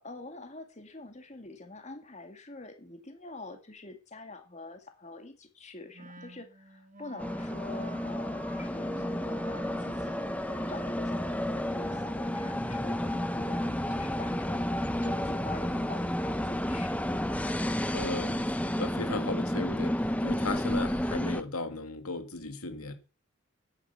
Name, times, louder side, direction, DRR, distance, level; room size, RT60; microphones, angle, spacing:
voice 1, 0.0-17.1, left 2 dB, 30° left, 2.3 m, -46 dB
Wind instrument woodwind instrument, 5.9-15.4, right 2 dB, 35° right, 1.5 m, -48 dB
sound 1, 7.2-21.4, left 1 dB, 5° left, 0.9 m, -31 dB
voice 2, 17.9-22.9, left 3 dB, 90° left, 2.3 m, -36 dB
13.5 x 10.5 x 5.8 m
head